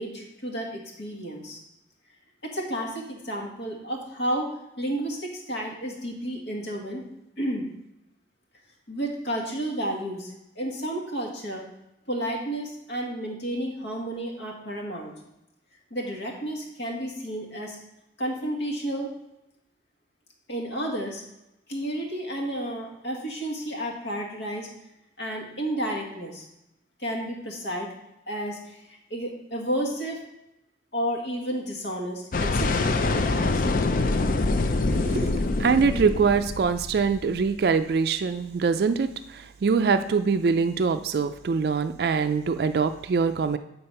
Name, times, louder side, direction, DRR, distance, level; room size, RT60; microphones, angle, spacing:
voice 1, 0.0-1.6 2.4-7.0 7.4-7.6 8.9-11.6 12.1-15.1 15.9-17.8 18.2-19.1 20.5-21.2 21.7-24.7 25.2-26.4 27.0-27.9 28.3-30.2 30.9-33.7, right 1 dB, 75° left, 0 dB, 1.7 m, -31 dB
sound 1, 32.3-37.5, left 3 dB, 50° left, 0.4 m, -25 dB
voice 2, 34.9-43.6, right 5 dB, 60° right, 9 dB, 0.3 m, -24 dB
8.7 x 4.1 x 5.5 m, 0.87 s
head